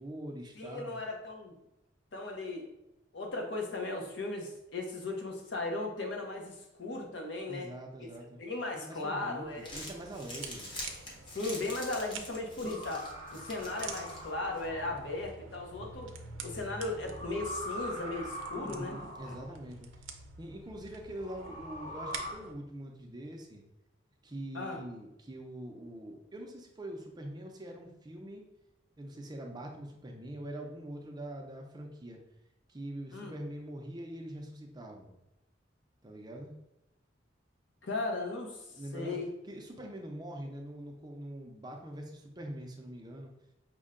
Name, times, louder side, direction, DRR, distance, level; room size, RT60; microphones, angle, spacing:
voice 1, 0.0-1.0 7.5-8.4 8.7-10.8 18.5-19.9 20.4-23.6 24.2-28.4 29.0-32.2 32.7-35.1 36.0-36.5 38.7-39.2 39.4-43.3, right 1 dB, 20° right, 1 dB, 0.5 m, -43 dB
voice 2, 0.6-1.5 2.1-2.6 3.1-7.7 8.4-9.7 11.3-16.1 16.4-18.9 19.3-19.4 24.5-24.8 33.1-33.3 37.8-38.7 38.9-39.3, left 2 dB, 65° left, 2 dB, 0.8 m, -37 dB
Crumpling crinkling, 9.4-14.7, left 1 dB, 25° left, 0.8 m, -46 dB
sound 1, 9.9-22.5, right 4 dB, 85° right, 0.5 m, -48 dB
sound 2, 12.6-15.2 16.9-19.6 21.2-22.3, equal, 40° left, 1.3 m, -43 dB
5.2 x 2.2 x 3.6 m, 0.90 s
head